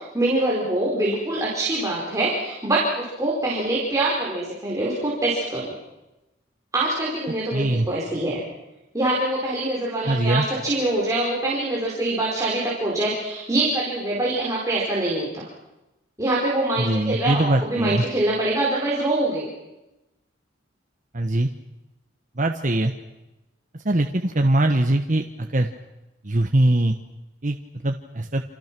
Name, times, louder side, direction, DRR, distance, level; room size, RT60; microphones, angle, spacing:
voice 1, 0.0-5.7 6.7-8.4 8.9-15.5 16.2-19.5, right 2 dB, 15° right, -5 dB, 4.7 m, -24 dB
voice 2, 7.5-7.9 10.0-10.5 16.8-18.1 21.1-21.5 22.4-22.9 23.7-25.7 26.2-26.9 27.4-27.6 27.8-28.4, right 1 dB, 40° right, 4 dB, 1.2 m, -22 dB
28.5 x 27.0 x 6.2 m, 1.0 s
head